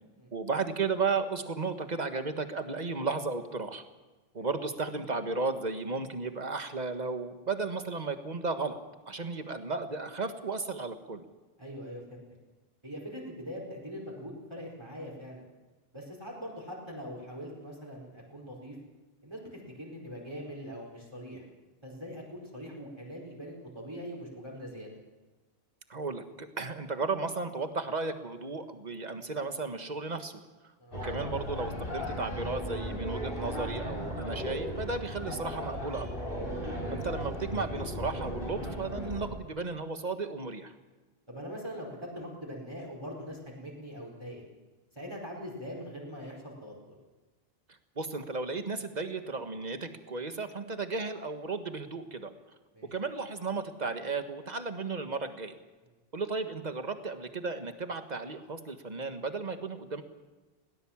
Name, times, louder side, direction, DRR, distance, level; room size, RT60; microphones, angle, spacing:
voice 1, 0.3-3.8 4.3-8.8 9.1-11.2 25.9-30.4 31.0-36.1 36.6-40.7 47.9-52.3 52.9-55.6 56.1-60.0, right 4 dB, 45° right, 8 dB, 1.6 m, -34 dB
voice 2, 11.6-12.2 12.8-15.4 15.9-18.8 19.2-21.4 21.8-24.9 30.8-31.0 36.5-36.7 41.3-44.4 44.9-46.9 52.7-52.9, equal, 25° right, -3 dB, 4.9 m, -42 dB
sound 1, 30.9-39.3, equal, 60° left, 4.3 m, -36 dB
21.0 x 18.0 x 7.3 m, 1.2 s
omnidirectional pair, 1.0 m